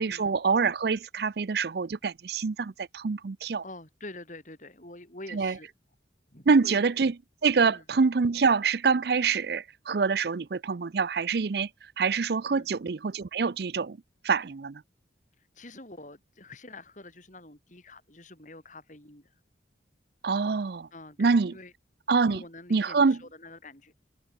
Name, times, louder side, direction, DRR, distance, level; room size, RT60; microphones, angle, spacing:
voice 1, 0.0-3.6 5.3-5.6 6.5-7.2 7.4-11.7 12.0-14.0 14.2-14.8 20.2-20.9 21.2-21.5 22.1-22.4 22.7-23.2, right 5 dB, 55° right, 0.5 m, -25 dB
voice 2, 3.6-5.7 6.3-6.8 7.6-7.8 12.5-12.7 15.4-19.4 20.9-21.7 22.3-23.9, left 2 dB, 40° left, 4.8 m, -46 dB
head